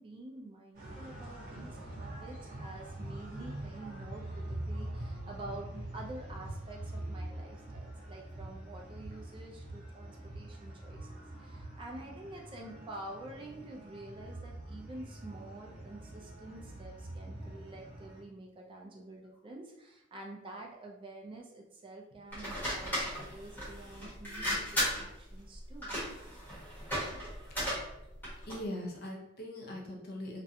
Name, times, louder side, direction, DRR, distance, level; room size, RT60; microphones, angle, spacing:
voice 1, 0.0-25.9, right 2 dB, 25° right, 0 dB, 0.3 m, -48 dB
sound 1, 0.7-18.2, right 1 dB, 40° right, 0.7 m, -44 dB
sound 2, 22.3-28.7, equal, 10° left, 0.9 m, -36 dB
voice 2, 28.5-30.4, left 1 dB, 50° left, -1 dB, 0.6 m, -41 dB
2.4 x 2.1 x 2.7 m, 0.88 s
head